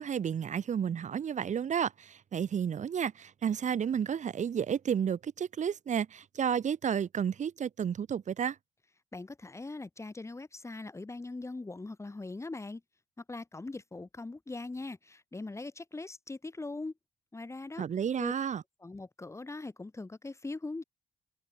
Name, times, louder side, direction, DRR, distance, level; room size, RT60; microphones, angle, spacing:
voice 1, 0.0-8.6 17.8-18.6, right 8 dB, 55° right, 4.6 m, -31 dB
voice 2, 9.1-12.8 13.3-16.9 17.3-17.9 18.2-18.3 18.8-20.8, left 3 dB, 20° left, 5.3 m, -41 dB
cardioid pair, 95°, 15 cm